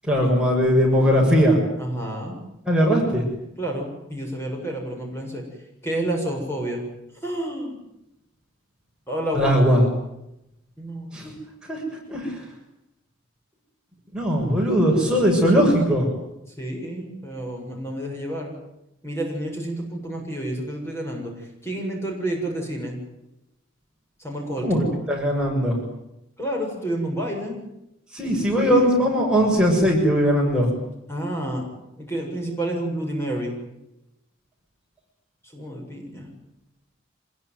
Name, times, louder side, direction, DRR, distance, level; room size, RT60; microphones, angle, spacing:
voice 1, 0.0-1.6 2.7-3.2 9.3-9.8 11.1-11.3 11.7-11.8 12.1-12.4 14.1-16.1 24.6-25.8 28.1-30.7, equal, 5° right, -2 dB, 6.9 m, -19 dB
voice 2, 1.8-2.4 3.6-5.4 5.8-6.8 7.2-7.8 9.1-9.6 10.8-11.4 16.6-18.5 19.0-23.0 24.2-24.7 26.4-27.6 31.1-31.7 32.0-33.6 35.5-36.3, right 1 dB, 15° left, 0 dB, 7.2 m, -29 dB
26.5 x 22.0 x 9.5 m, 0.86 s
head